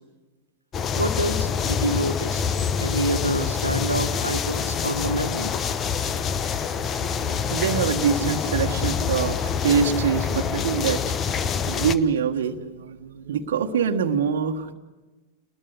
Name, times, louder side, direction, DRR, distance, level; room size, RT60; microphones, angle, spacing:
sound 1, 0.7-12.0, left 6 dB, 25° left, 1.1 m, -26 dB
voice 1, 0.9-2.5 2.8-5.5, equal, 90° right, 4 dB, 1.6 m, -27 dB
voice 2, 6.6-11.0 11.7-14.7, right 6 dB, 60° right, 4 dB, 1.4 m, -25 dB
29.0 x 21.0 x 8.2 m, 1.2 s
figure-of-eight pair, 90°, 0 cm